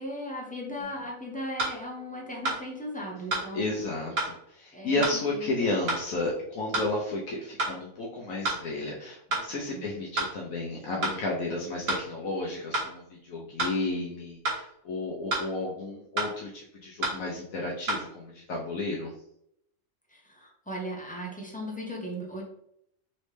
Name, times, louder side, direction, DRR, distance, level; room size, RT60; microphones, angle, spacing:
voice 1, 0.0-3.8 4.7-5.7 9.7-9.8 20.1-22.4, equal, 10° left, -2 dB, 0.5 m, -37 dB
sound 1, 0.8-0.9 1.6-1.8 2.4-2.6 3.3-3.5 4.2-4.3 5.0-5.2 5.9-6.0 6.7-6.9 7.6-7.8 8.4-8.6 9.3-9.5 10.2-10.3 11.0-11.2 11.9-12.0 12.7-12.9 13.6-13.8 14.4-14.6 15.3-15.5 16.2-16.3 17.0-17.2 17.9-18.0, right 2 dB, 75° right, 1.7 m, -29 dB
voice 2, 3.5-19.1, left 2 dB, 75° left, -3 dB, 1.1 m, -32 dB
4.2 x 3.1 x 3.2 m, 0.74 s
omnidirectional pair, 1.5 m